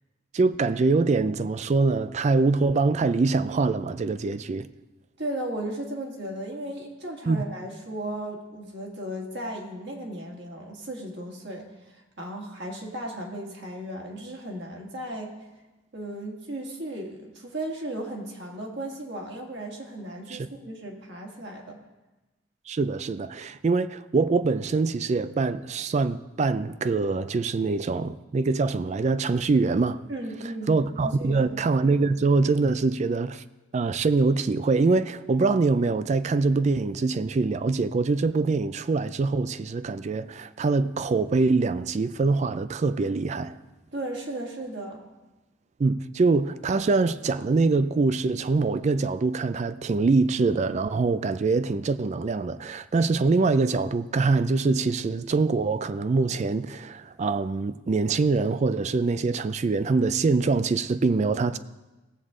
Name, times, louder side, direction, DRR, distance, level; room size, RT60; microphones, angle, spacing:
voice 1, 0.3-4.7 7.3-7.4 20.3-20.5 22.7-30.0 30.7-33.4 33.7-43.6 45.8-61.6, right 3 dB, 35° right, 0.3 m, -24 dB
voice 2, 5.2-15.3 15.9-21.8 30.1-31.6 43.9-45.0, right 1 dB, 55° right, 2.0 m, -35 dB
18.5 x 7.9 x 3.7 m
head